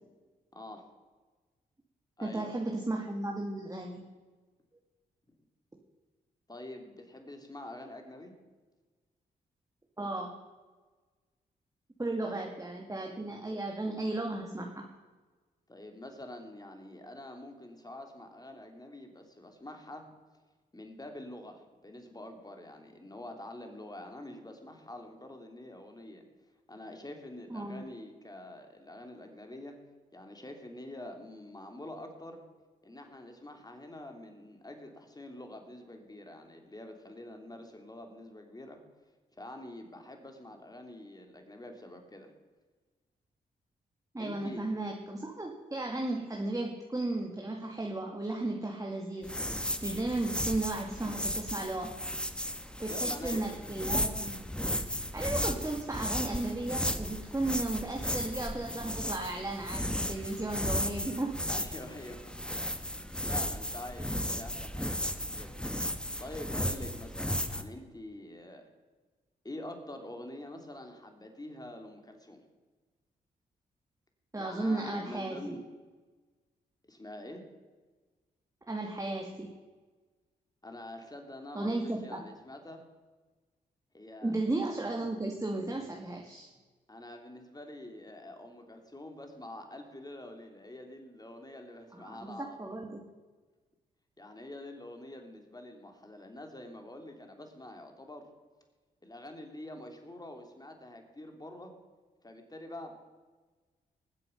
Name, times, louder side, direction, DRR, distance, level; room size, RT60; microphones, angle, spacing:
voice 1, 0.5-0.8 2.2-2.5 6.5-8.3 12.2-12.4 15.7-20.1 20.7-26.2 26.7-29.8 30.1-32.4 32.8-38.8 39.4-42.3 44.2-44.7 52.9-53.5 61.5-62.4 62.9-65.8 66.2-68.7 69.4-72.4 74.4-75.6 76.9-77.4 80.6-82.8 83.9-84.3 86.9-92.6 94.2-98.3 99.0-101.7 102.2-102.9, left 1 dB, 20° left, 4 dB, 3.1 m, -46 dB
voice 2, 2.2-4.0 10.0-10.3 12.0-14.8 27.5-27.8 44.1-49.3 49.8-51.9 52.8-54.4 55.1-61.4 74.3-75.5 78.7-79.5 81.5-82.2 84.2-86.5 91.9-93.0, right 2 dB, 20° right, 0 dB, 2.1 m, -34 dB
sound 1, 49.2-67.6, equal, 5° left, 1.3 m, -35 dB
19.5 x 7.8 x 5.8 m, 1.3 s
supercardioid pair, 45°, 18 cm